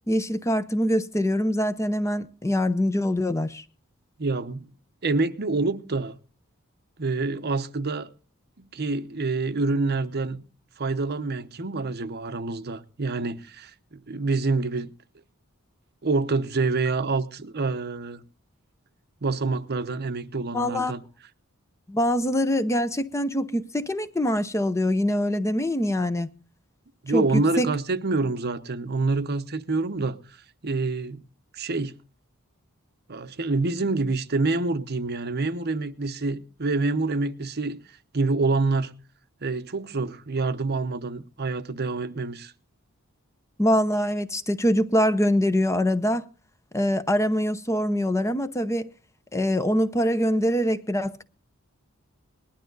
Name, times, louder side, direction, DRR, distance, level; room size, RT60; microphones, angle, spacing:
voice 1, 0.1-3.6 20.5-20.9 21.9-26.3 27.1-27.7 43.6-46.3 46.7-48.9 49.3-51.2, equal, 15° left, 0.7 m, -24 dB
voice 2, 4.2-4.7 5.0-6.2 7.0-8.1 8.6-10.4 10.8-14.9 16.0-18.2 19.2-21.0 27.0-30.4 30.6-31.2 31.5-31.9 33.1-37.8 38.1-38.9 39.4-42.5, right 3 dB, 50° right, 0.9 m, -27 dB
19.5 x 12.0 x 3.9 m
head